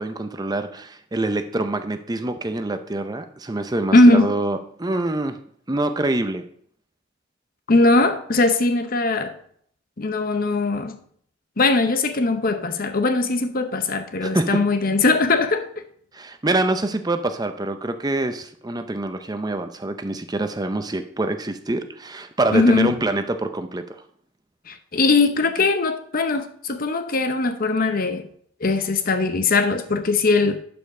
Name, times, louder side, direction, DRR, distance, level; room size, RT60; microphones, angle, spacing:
voice 1, 0.0-5.4 5.7-6.4 14.2-14.6 16.1-24.0, right 2 dB, 20° right, 0.6 m, -25 dB
voice 2, 3.9-4.3 7.7-9.4 10.0-11.0 11.6-15.7 22.5-22.9 24.7-28.3 28.6-30.6, left 2 dB, 45° left, 0.8 m, -20 dB
11.5 x 5.3 x 3.7 m
head